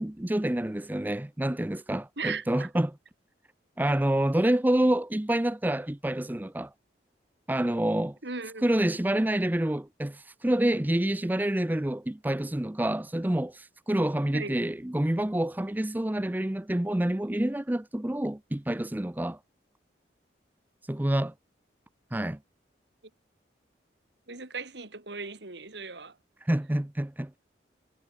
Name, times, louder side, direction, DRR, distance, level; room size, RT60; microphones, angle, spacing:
voice 1, 0.0-2.9 3.8-6.7 7.5-8.2 8.6-19.4 20.9-21.3 22.1-22.4 26.4-27.4, right 1 dB, 10° right, 0.5 m, -27 dB
voice 2, 2.2-2.7 8.2-8.7 14.3-14.6 24.3-26.2, right 4 dB, 70° right, 2.6 m, -37 dB
head